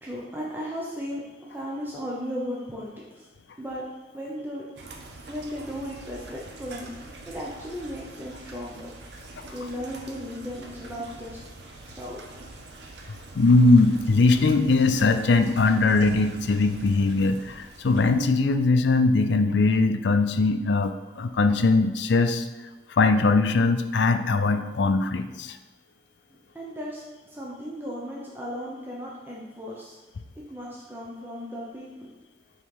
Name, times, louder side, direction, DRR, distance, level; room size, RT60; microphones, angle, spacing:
voice 1, 0.0-1.2 1.5-3.3 3.6-3.8 4.1-4.6 5.3-6.9 7.3-8.9 9.5-11.4 11.9-12.2 26.3-30.0 30.4-32.1, equal, 10° right, -5 dB, 0.7 m, -36 dB
sound 1, 4.8-18.3, right 2 dB, 70° right, 0.7 m, -44 dB
voice 2, 13.3-22.5 23.0-25.6, left 3 dB, 75° left, 8 dB, 0.4 m, -21 dB
5.5 x 4.0 x 4.7 m, 1.1 s
head